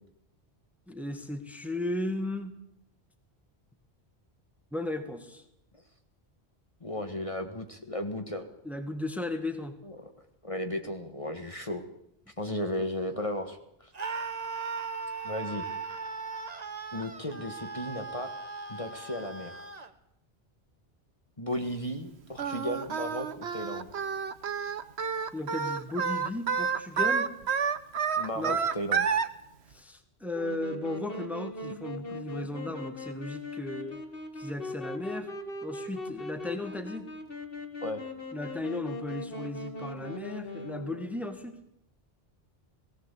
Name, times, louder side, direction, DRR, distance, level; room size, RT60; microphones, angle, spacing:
voice 1, 0.9-2.5 4.7-5.4 8.7-9.8 25.3-27.3 28.4-28.6 29.7-34.0 34.3-35.3 35.6-37.1 38.3-41.6, left 1 dB, ahead, 7 dB, 1.7 m, -35 dB
voice 2, 6.8-8.5 9.8-10.1 10.4-11.8 12.4-13.9 15.2-15.6 16.9-18.3 18.7-19.7 21.4-23.9 28.2-29.1 37.8-38.0, left 1 dB, 30° left, 5 dB, 1.8 m, -35 dB
Screaming, 13.9-19.9, right 4 dB, 40° right, 1.4 m, -38 dB
Singing, 22.4-29.3, right 6 dB, 85° right, 1.3 m, -29 dB
Wind instrument woodwind instrument, 30.3-41.2, left 2 dB, 60° left, 2.1 m, -40 dB
18.5 x 17.0 x 8.3 m, 0.78 s
omnidirectional pair, 1.1 m